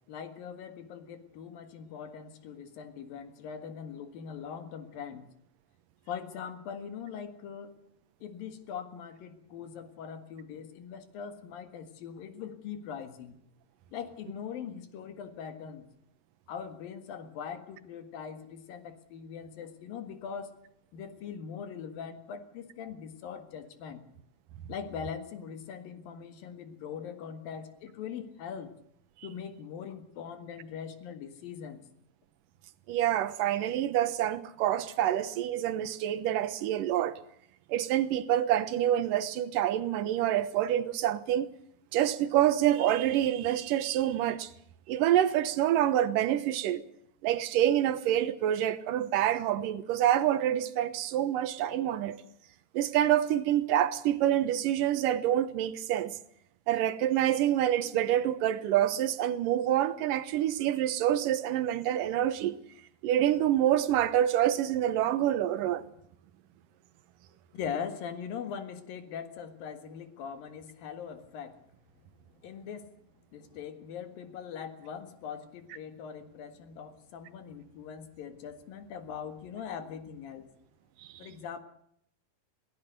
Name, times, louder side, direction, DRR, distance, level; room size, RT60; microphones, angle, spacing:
voice 1, 0.1-5.3 6.1-7.7 8.2-13.4 13.9-15.9 16.5-20.6 20.9-24.0 24.7-28.8 29.2-31.8 67.5-71.6 72.4-72.9 73.3-80.5 81.2-81.6, left 7 dB, 85° left, 3.6 m, -41 dB
voice 2, 32.9-37.2 37.7-41.5 41.9-44.5 44.9-46.8 47.2-52.2 52.7-56.2 56.7-62.6 63.0-65.8, right 12 dB, 75° right, 2.6 m, -27 dB
22.0 x 18.5 x 6.7 m
omnidirectional pair, 4.0 m